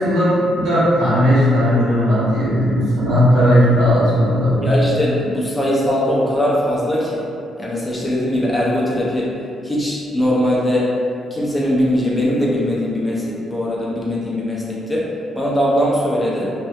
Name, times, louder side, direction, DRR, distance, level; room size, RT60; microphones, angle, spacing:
voice 1, 0.0-4.7, equal, 90° right, -11 dB, 1.1 m, -16 dB
voice 2, 4.6-7.3 7.6-9.3 9.6-10.9 11.3-16.5, equal, 10° left, -6 dB, 0.6 m, -20 dB
2.7 x 2.5 x 2.2 m, 2.6 s
cardioid pair, 90°, 0 cm